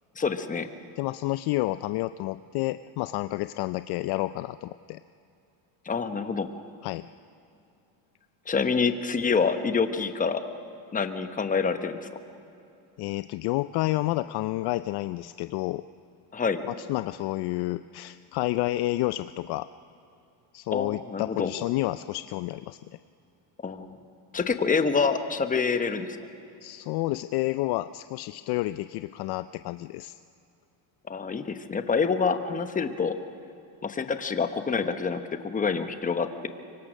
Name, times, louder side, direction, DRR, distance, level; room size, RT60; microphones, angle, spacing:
voice 1, 0.2-0.7 5.8-6.5 8.5-10.4 10.9-12.1 16.3-16.6 20.7-21.5 23.6-23.9 24.3-26.2 31.1-33.1 33.8-36.5, left 5 dB, 15° left, 9 dB, 1.0 m, -27 dB
voice 2, 1.0-5.0 6.8-7.1 13.0-15.8 16.7-19.7 20.5-22.8 26.6-30.2, left 17 dB, 55° left, 13 dB, 0.5 m, -30 dB
24.5 x 23.5 x 6.3 m, 2.7 s
cardioid pair, 140°, 49 cm